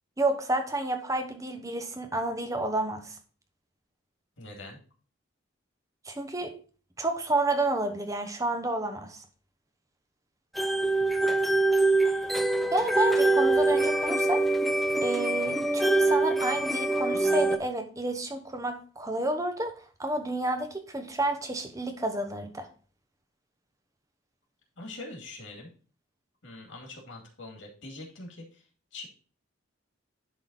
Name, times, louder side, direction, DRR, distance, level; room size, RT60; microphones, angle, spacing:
voice 1, 0.2-3.2 6.0-6.6 7.0-9.2 12.7-14.5 15.0-22.7, right 2 dB, 15° right, 1.0 m, -30 dB
voice 2, 4.4-4.8 11.0-11.3 24.8-25.7 26.4-29.1, left 2 dB, 70° left, 2.4 m, -44 dB
sound 1, 10.5-17.6, right 2 dB, ahead, 0.4 m, -24 dB
10.5 x 3.9 x 4.1 m
head